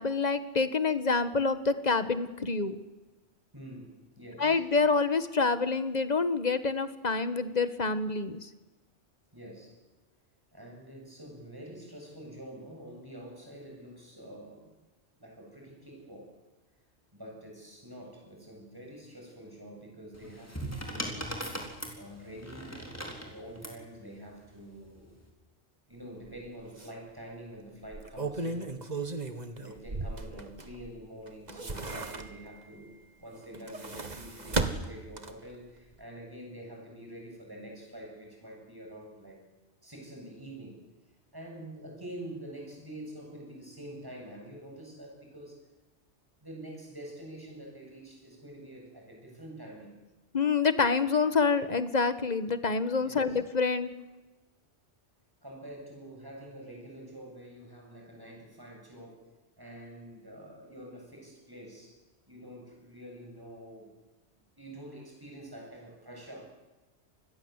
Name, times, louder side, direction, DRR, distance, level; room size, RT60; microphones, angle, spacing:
voice 1, 0.0-2.8 4.4-8.5 50.3-53.9, left 4 dB, 40° left, 12 dB, 1.5 m, -27 dB
voice 2, 3.5-4.6 9.3-9.8 10.5-14.8 15.2-16.4 17.1-21.7 22.0-22.8 23.2-25.2 25.9-29.2 29.5-39.4 39.8-45.6 46.4-49.9 53.0-53.4 55.4-59.2 59.6-62.0 62.3-63.9 64.6-66.4, right 1 dB, 20° right, 0 dB, 8.2 m, -46 dB
sound 1, 20.1-23.8 24.9-25.2, equal, 15° left, 4.5 m, -39 dB
sound 2, 26.2-26.4 26.8-26.9 27.8-30.9 31.3-32.6 33.4-35.6 35.9-36.0, right 3 dB, 40° right, 1.8 m, -35 dB
27.0 x 21.0 x 8.1 m, 1.1 s
omnidirectional pair, 1.2 m